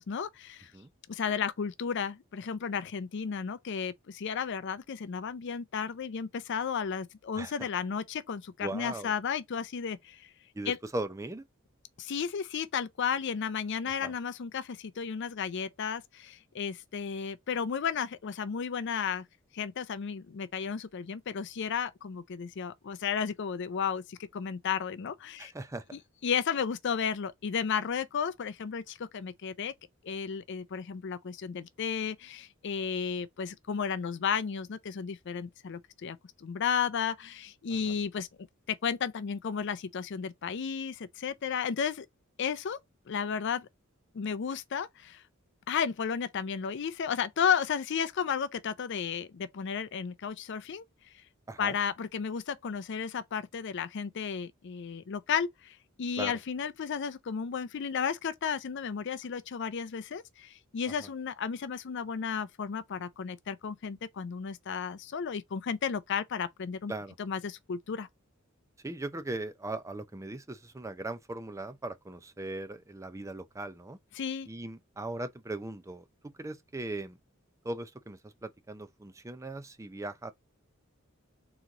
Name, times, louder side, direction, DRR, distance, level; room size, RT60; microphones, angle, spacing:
voice 1, 0.0-0.7 1.1-10.3 10.7-10.8 12.0-19.2 19.5-25.5 25.9-29.7 30.0-38.3 38.7-42.1 42.4-42.8 43.1-43.7 44.1-45.2 45.7-50.8 51.6-66.9 67.2-68.1 74.1-74.5, left 7 dB, 60° left, 0.5 m, -33 dB
voice 2, 7.3-7.7 8.6-9.1 10.5-11.4 13.9-14.1 25.4-26.0 37.9-38.0 51.5-51.8 56.2-56.4 61.0-61.1 66.9-67.2 68.8-74.0 74.5-77.2 77.6-80.3, right 2 dB, 15° right, 0.5 m, -39 dB
3.9 x 3.0 x 3.5 m
head